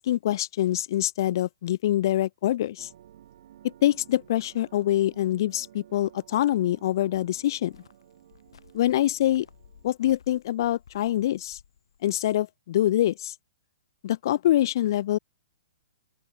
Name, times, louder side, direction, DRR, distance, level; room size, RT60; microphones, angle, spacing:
voice 1, 0.0-2.7 3.6-7.7 8.7-9.5 9.8-11.6 12.0-13.3 14.0-15.2, left 13 dB, 50° left, 0.8 m, -25 dB
sound 1, 2.8-10.1, right 11 dB, 55° right, 3.5 m, -54 dB
Cricket, 7.1-12.3, left 8 dB, 80° left, 6.1 m, -58 dB
open air
hypercardioid pair, 155°, 3 cm